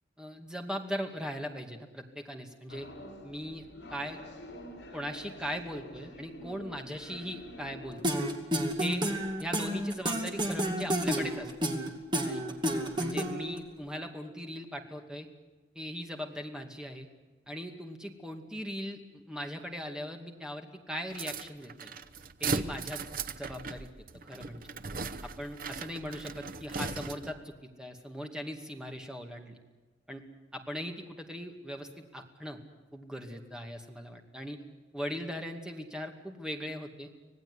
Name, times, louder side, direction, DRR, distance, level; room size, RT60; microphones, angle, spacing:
voice 1, 0.2-2.9 3.2-4.2 4.9-8.0 8.8-9.0 9.4-11.5 12.2-12.6 13.0-15.3 15.7-17.1 17.5-21.9 22.4-23.0 23.3-23.9 24.3-24.7 25.2-29.6 30.1-30.2 30.5-32.6 32.9-34.6 34.9-37.1, equal, 5° right, 3 dB, 2.3 m, -39 dB
sound 1, 2.7-8.2, left 1 dB, 65° left, 6.0 m, -47 dB
sound 2, 8.0-13.6, equal, 25° right, 2.6 m, -30 dB
sound 3, 21.1-27.4, right 4 dB, 50° right, 1.0 m, -38 dB
26.0 x 18.0 x 9.8 m, 1.3 s
head